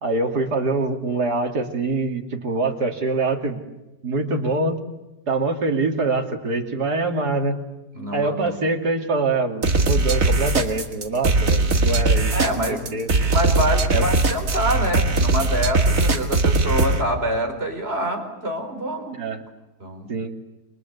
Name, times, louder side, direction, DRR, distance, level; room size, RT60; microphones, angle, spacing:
voice 1, 0.0-3.6 4.0-4.8 5.3-7.6 8.1-13.1 13.9-14.1 19.1-19.4 20.1-20.3, right 3 dB, 75° right, 4 dB, 3.2 m, -24 dB
voice 2, 7.9-8.6 12.3-12.9 13.3-19.2 19.8-20.1, equal, 35° right, 4 dB, 4.7 m, -26 dB
sound 1, 9.6-17.0, right 2 dB, 55° right, 2.6 m, -19 dB
28.5 x 24.0 x 8.2 m, 1.0 s
omnidirectional pair, 1.7 m